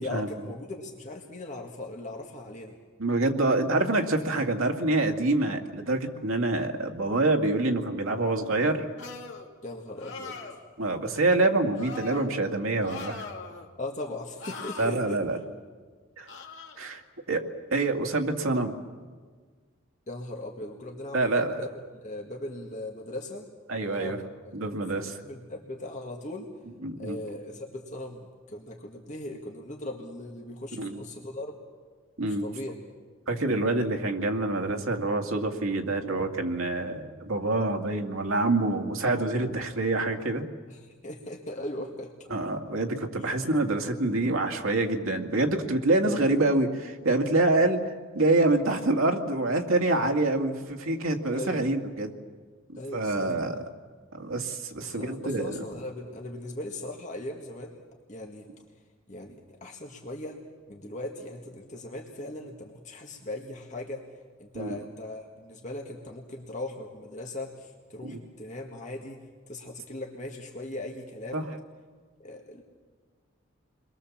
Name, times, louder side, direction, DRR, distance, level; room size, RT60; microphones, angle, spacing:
voice 1, 0.0-2.8 9.6-10.6 13.8-15.2 20.1-21.7 22.0-23.5 23.8-24.5 24.9-26.5 27.0-31.6 32.3-32.8 40.7-42.1 43.2-43.3 46.1-46.3 51.3-51.6 52.8-53.6 54.8-57.8 58.1-58.5 59.1-60.4 60.7-64.1 64.4-71.5 72.2-72.6, left 1 dB, 35° left, 1 dB, 1.8 m, -39 dB
voice 2, 3.0-8.9 10.8-13.3 14.8-15.4 16.2-16.3 16.8-17.0 17.3-17.4 17.7-18.8 21.1-21.6 23.7-24.2 24.5-25.2 26.8-27.4 30.8-31.0 32.2-32.5 33.3-40.4 42.3-52.1 52.7-53.6 54.1-55.5 64.5-64.8 68.0-68.2 71.3-71.6, right 2 dB, 85° right, 3 dB, 2.2 m, -26 dB
sound 1, 9.0-9.5 10.0-10.6 11.7-12.3 12.8-13.7 14.4-14.9 16.3-16.8, left 4 dB, 55° left, 2.4 m, -40 dB
30.0 x 22.0 x 7.3 m, 1.5 s
head